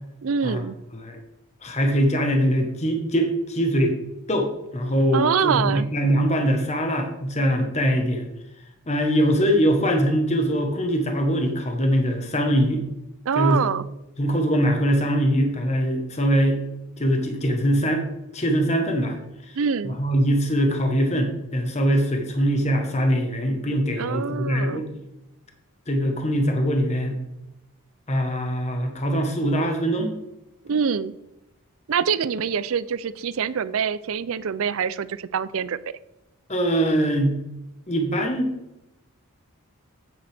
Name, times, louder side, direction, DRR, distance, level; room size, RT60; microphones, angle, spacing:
voice 1, 0.2-0.8 5.1-5.9 13.3-13.8 19.5-20.0 24.0-24.8 30.6-31.1 31.9-35.8, right 6 dB, 70° right, 17 dB, 0.4 m, -25 dB
voice 2, 1.6-4.0 4.3-8.3 8.9-12.8 13.3-13.6 14.2-16.6 17.0-18.0 18.3-19.2 19.8-25.0 25.9-27.2 28.1-30.2 36.5-37.4 37.9-38.5, equal, 30° left, 4 dB, 1.2 m, -22 dB
9.4 x 8.2 x 3.5 m, 0.91 s
head